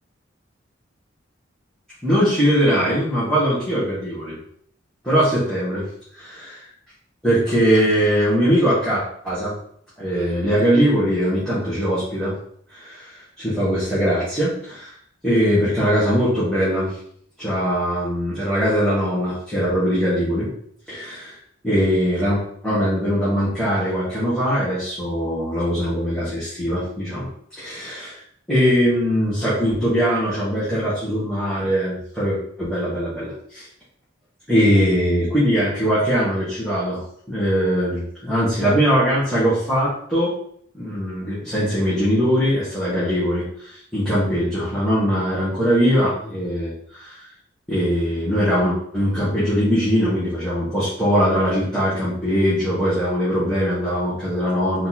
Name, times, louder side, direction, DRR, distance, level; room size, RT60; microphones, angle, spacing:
voice 1, 2.0-4.4 5.0-5.9 6.2-6.6 7.2-9.5 10.0-12.3 12.7-14.9 15.2-16.9 17.4-20.5 20.9-21.3 21.6-27.3 27.6-28.2 28.5-33.6 34.5-37.0 37.3-40.3 40.7-47.3 47.7-54.9, equal, 5° left, -11 dB, 1.5 m, -21 dB
4.1 x 2.9 x 4.0 m, 0.64 s
head